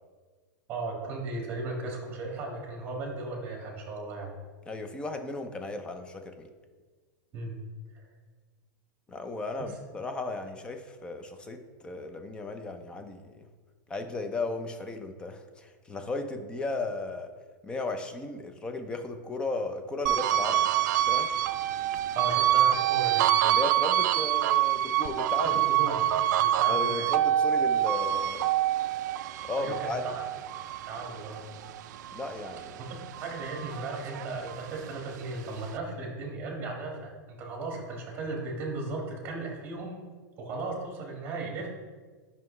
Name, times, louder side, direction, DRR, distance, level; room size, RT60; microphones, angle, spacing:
voice 1, 0.7-4.3 7.3-7.6 7.9-8.0 9.6-9.7 22.1-23.3 25.8-26.1 26.4-27.1 29.6-30.2 30.9-31.4 33.2-40.0 40.4-41.7, right 3 dB, 20° right, 0 dB, 1.5 m, -36 dB
voice 2, 4.7-6.5 9.1-13.5 13.9-17.3 17.6-21.3 23.4-25.6 26.7-28.5 29.5-30.0 32.1-32.9, left 3 dB, 10° left, 7 dB, 0.4 m, -35 dB
sound 1, 20.1-32.7 33.1-34.8, right 12 dB, 65° right, 0.4 m, -26 dB
9.1 x 5.5 x 3.1 m, 1.5 s
supercardioid pair, 165°, 10 cm